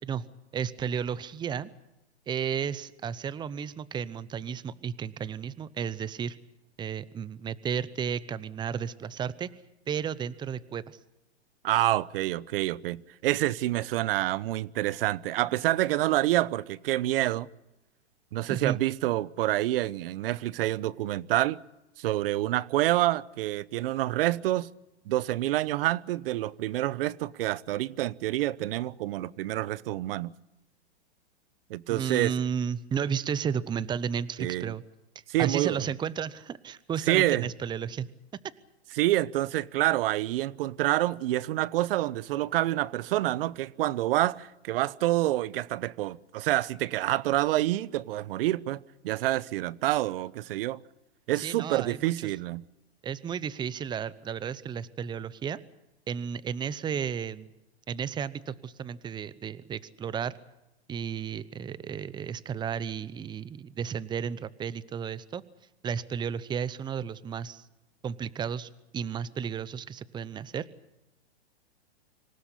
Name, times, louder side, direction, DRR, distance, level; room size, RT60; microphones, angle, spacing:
voice 1, 0.5-1.7 2.3-6.4 6.8-9.5 9.9-11.0 18.5-18.8 31.9-34.8 35.4-38.1 51.4-52.3 53.0-55.6 56.1-57.5 57.9-60.3 60.9-65.4 65.8-67.6 68.0-70.7, right 7 dB, 15° right, 0.7 m, -33 dB
voice 2, 11.6-17.5 18.3-21.6 22.0-24.7 25.1-30.3 31.7-32.3 34.4-34.7 35.3-35.8 37.1-37.5 39.0-50.8 51.3-52.7, right 15 dB, 55° right, 0.9 m, -27 dB
26.0 x 17.5 x 8.3 m
hypercardioid pair, 135°, 33 cm